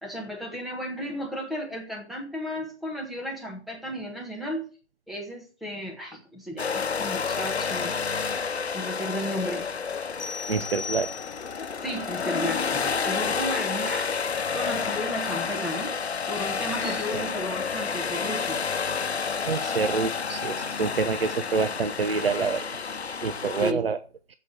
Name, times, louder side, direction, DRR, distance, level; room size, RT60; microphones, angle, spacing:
voice 1, 0.0-4.7 5.1-7.9 8.7-9.7 11.8-14.2 14.5-16.0 16.3-18.6 23.6-23.8, equal, ahead, 0 dB, 1.3 m, -34 dB
sound 1, 6.6-23.7, left 5 dB, 70° left, 1.0 m, -30 dB
sound 2, 10.2-11.7, left 5 dB, 20° left, 0.5 m, -37 dB
voice 2, 10.5-11.1 16.8-17.2 19.4-22.6 23.2-24.0, right 5 dB, 60° right, 11 dB, 0.9 m, -27 dB
7.6 x 7.6 x 8.2 m, 0.38 s
figure-of-eight pair, 140°, 34 cm